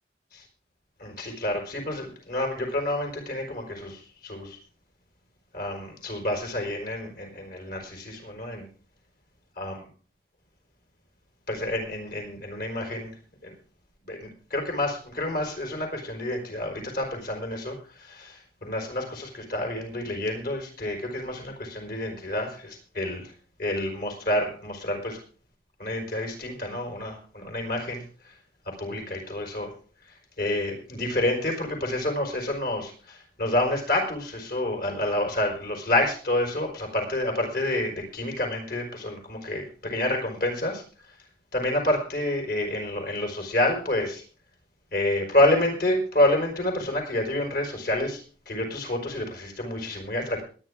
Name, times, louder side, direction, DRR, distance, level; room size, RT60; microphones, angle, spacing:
voice 1, 1.0-4.6 5.5-8.7 9.6-9.9 11.5-13.1 13.4-13.5 14.1-23.2 23.6-25.2 25.8-28.0 28.8-29.7 30.4-40.8 41.5-44.2 44.9-48.2 48.5-50.4, left 1 dB, 50° left, 2 dB, 4.9 m, -28 dB
21.5 x 9.9 x 3.6 m, 0.38 s
head